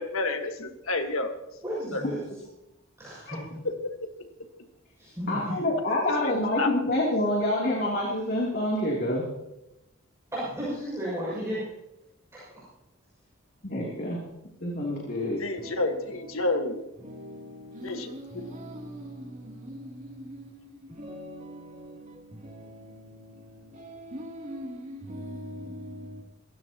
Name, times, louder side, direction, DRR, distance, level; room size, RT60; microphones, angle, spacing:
voice 1, 0.0-1.4 1.9-2.0 3.8-3.9 6.1-6.3 6.6-6.7 15.4-16.8 17.8-18.1, left 2 dB, 75° left, 1.7 m, -29 dB
voice 2, 1.6-2.2 3.0-3.6 5.0-5.7 10.3-11.7 12.3-12.4, equal, 15° right, 6.6 m, -33 dB
voice 3, 5.3-9.2 13.6-14.2 14.6-15.4, left 1 dB, 50° left, 3.1 m, -27 dB
voice 4, 15.6-16.7 17.0-26.2, equal, 35° right, 3.1 m, -42 dB
26.0 x 15.0 x 3.0 m
head